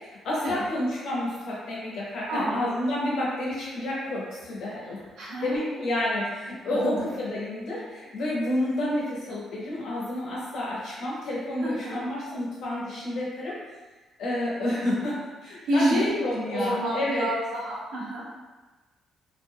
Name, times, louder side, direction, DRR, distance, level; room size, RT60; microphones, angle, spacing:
voice 1, 0.0-5.0 5.4-13.6 14.2-17.3, left 1 dB, 65° left, -6 dB, 1.0 m, -30 dB
voice 2, 2.3-2.6 4.8-5.8 6.7-7.0 11.6-12.0 15.7-18.2, equal, 85° right, -7 dB, 1.1 m, -29 dB
3.5 x 2.4 x 2.2 m, 1.2 s
cardioid pair, 145°, 0 cm